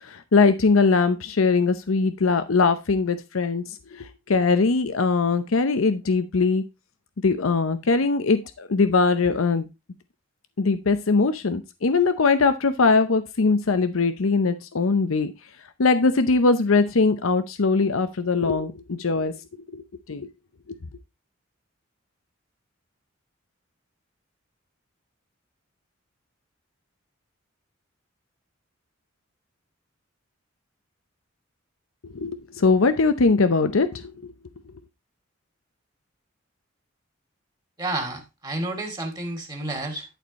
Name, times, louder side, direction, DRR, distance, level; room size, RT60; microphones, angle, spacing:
voice 1, 0.0-6.6 7.2-9.7 10.6-15.3 15.8-19.3 19.7-19.8 20.1-20.3 32.1-34.3, left 4 dB, 85° left, 0.7 m, -21 dB
voice 2, 37.8-40.2, right 2 dB, 20° right, 2.4 m, -30 dB
11.5 x 4.4 x 4.1 m
head